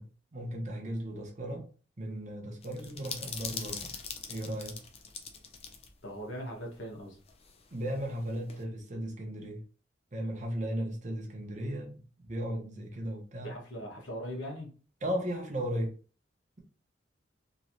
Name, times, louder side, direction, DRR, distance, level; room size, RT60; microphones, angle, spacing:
voice 1, 0.0-1.7 2.0-4.0 4.3-4.8 7.7-9.6 10.1-13.6 15.0-16.0, equal, 40° right, 0.8 m, -36 dB
sound 1, 2.6-5.9 6.2-6.3 7.3-8.6, left 6 dB, 30° left, 0.5 m, -42 dB
voice 2, 6.0-7.2 13.4-14.7, equal, 80° left, 1.3 m, -40 dB
3.0 x 3.0 x 2.6 m
head